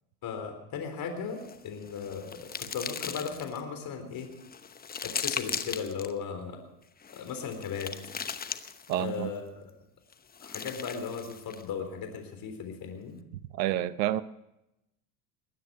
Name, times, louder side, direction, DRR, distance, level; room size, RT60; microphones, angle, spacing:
voice 1, 0.2-4.3 5.0-6.6 7.1-7.9 8.9-9.7 10.4-13.2, left 6 dB, 45° left, 3.8 m, -37 dB
sound 1, 1.3-3.6 4.2-6.1 7.0-9.1 10.1-11.7, left 6 dB, 20° left, 0.9 m, -38 dB
voice 2, 8.9-9.3 13.5-14.2, right 13 dB, 80° right, 0.8 m, -28 dB
21.0 x 9.6 x 6.3 m
hypercardioid pair, 90°, 48 cm